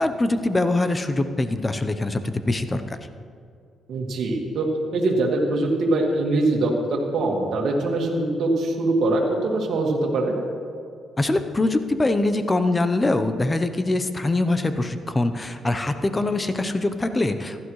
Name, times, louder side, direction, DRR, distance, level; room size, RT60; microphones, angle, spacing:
voice 1, 0.0-3.0 11.2-17.6, left 2 dB, 20° left, 9 dB, 0.7 m, -23 dB
voice 2, 3.9-4.7 4.9-10.4, right 2 dB, 70° right, 0 dB, 1.9 m, -23 dB
15.0 x 12.0 x 3.2 m, 2.3 s
cardioid pair, 90°, 0 cm